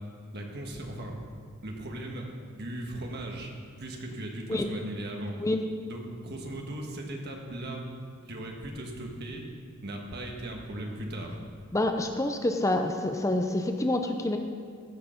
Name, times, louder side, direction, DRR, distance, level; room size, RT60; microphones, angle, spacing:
voice 1, 0.3-1.1 1.6-3.5 3.8-5.3 5.9-7.8 8.3-9.4 9.8-11.5, right 1 dB, 50° right, 1 dB, 1.5 m, -38 dB
voice 2, 11.7-14.4, left 1 dB, 15° left, 5 dB, 0.5 m, -27 dB
15.0 x 6.6 x 5.2 m, 2.1 s
head